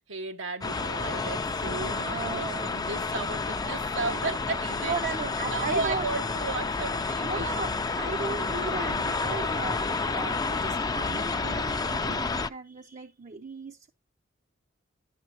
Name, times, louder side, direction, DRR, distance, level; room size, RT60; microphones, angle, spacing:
voice 1, 0.0-5.0 5.4-7.5, right 3 dB, 90° right, 1.1 m, -34 dB
sound 1, 0.6-12.5, left 4 dB, 20° left, 0.4 m, -30 dB
voice 2, 1.8-2.8 4.8-6.1 7.2-13.9, right 4 dB, 40° right, 0.5 m, -36 dB
11.0 x 6.9 x 2.8 m
head